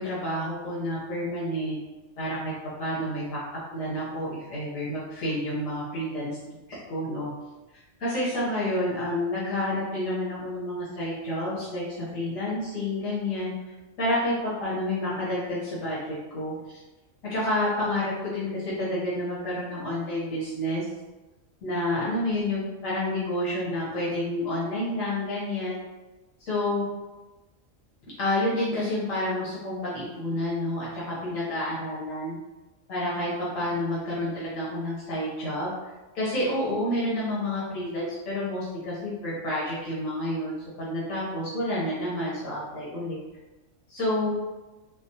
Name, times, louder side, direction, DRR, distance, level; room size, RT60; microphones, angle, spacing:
voice 1, 0.0-1.8 2.2-2.5 2.8-3.4 3.7-6.6 6.9-7.3 8.0-13.5 14.0-14.3 14.6-16.5 17.2-20.8 21.6-25.8 26.4-26.9 28.2-32.4 32.9-35.7 36.1-43.2 43.9-44.3, left 1 dB, 75° left, -8 dB, 1.3 m, -29 dB
3.5 x 2.0 x 2.6 m, 1.1 s
omnidirectional pair, 1.4 m